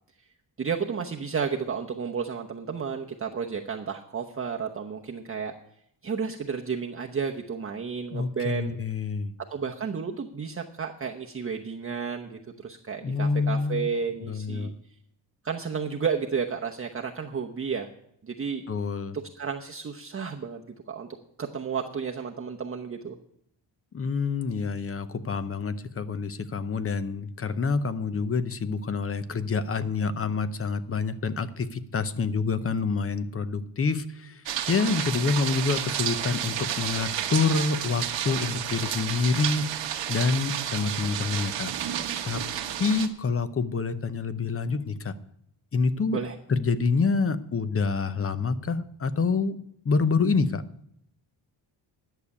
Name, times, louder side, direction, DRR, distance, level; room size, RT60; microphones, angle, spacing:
voice 1, 0.6-5.5 6.0-8.8 9.5-14.7 15.4-17.9 18.2-18.6 19.4-21.1 21.4-23.2 46.1-46.3, right 6 dB, 30° right, 1 dB, 0.9 m, -32 dB
voice 2, 8.1-9.3 13.0-13.9 14.2-14.7 18.7-19.2 23.9-34.4 34.7-39.8 40.1-41.7 42.2-42.4 42.8-45.2 45.7-46.2 46.5-49.6 49.8-50.6, left 4 dB, 30° left, 13 dB, 0.8 m, -27 dB
sound 1, 34.5-43.1, right 10 dB, 85° right, 1.3 m, -31 dB
11.0 x 6.8 x 8.3 m, 0.73 s
cardioid pair, 110°, 43 cm